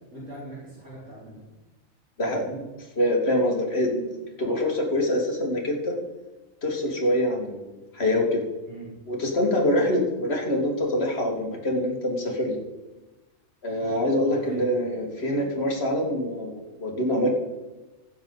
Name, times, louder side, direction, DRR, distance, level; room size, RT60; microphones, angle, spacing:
voice 1, 0.1-1.4 2.2-2.6 8.6-8.9 14.3-14.8, right 1 dB, 60° right, -9 dB, 4.8 m, -41 dB
voice 2, 3.0-6.0 6.6-8.4 9.1-12.6 13.6-17.3, left 1 dB, 50° left, 0 dB, 2.4 m, -25 dB
16.0 x 7.3 x 4.0 m, 1.1 s
omnidirectional pair, 1.4 m